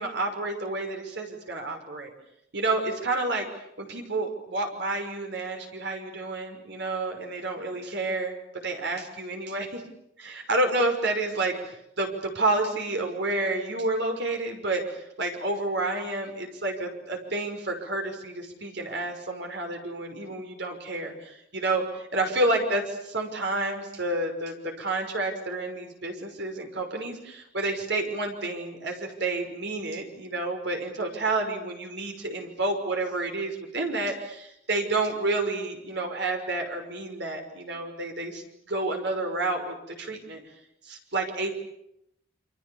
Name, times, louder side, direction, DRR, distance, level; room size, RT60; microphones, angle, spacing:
voice 1, 0.0-2.1 2.5-3.5 3.8-8.4 8.6-9.8 10.2-40.4 40.9-41.5, right 2 dB, 65° right, 4 dB, 6.0 m, -30 dB
29.0 x 26.0 x 7.3 m, 0.78 s
head